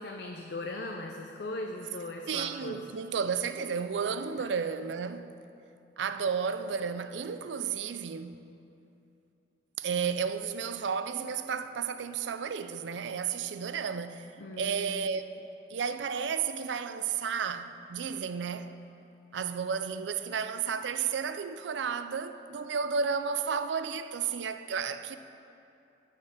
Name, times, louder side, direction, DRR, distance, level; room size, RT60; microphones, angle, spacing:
voice 1, 0.0-2.8 4.4-4.5 14.4-15.0, left 2 dB, 65° left, 0.5 m, -39 dB
voice 2, 2.3-5.3 6.0-8.5 9.8-14.3 14.5-15.4 15.7-18.8 19.3-25.2, right 6 dB, 85° right, 0.4 m, -32 dB
10.5 x 4.5 x 7.4 m
head